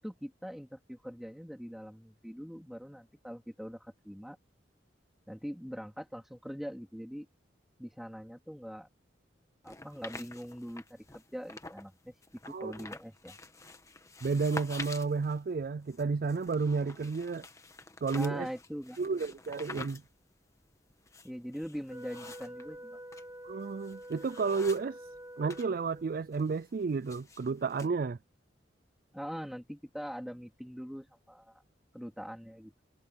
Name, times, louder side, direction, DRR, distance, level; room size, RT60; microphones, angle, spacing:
voice 1, 0.0-4.4 5.3-7.3 7.8-8.9 9.6-13.4 18.1-19.1 21.2-23.0 29.1-31.6 31.9-32.7, equal, ahead, 3.1 m, -43 dB
sound 1, 9.6-11.9 12.2-25.7 26.0-27.9, left 3 dB, 15° left, 1.4 m, -48 dB
voice 2, 14.2-17.5 18.0-18.5 19.0-20.0 23.4-25.0 25.4-28.2, right 4 dB, 50° right, 0.4 m, -31 dB
Wind instrument woodwind instrument, 21.9-26.3, equal, 20° right, 2.8 m, -47 dB
head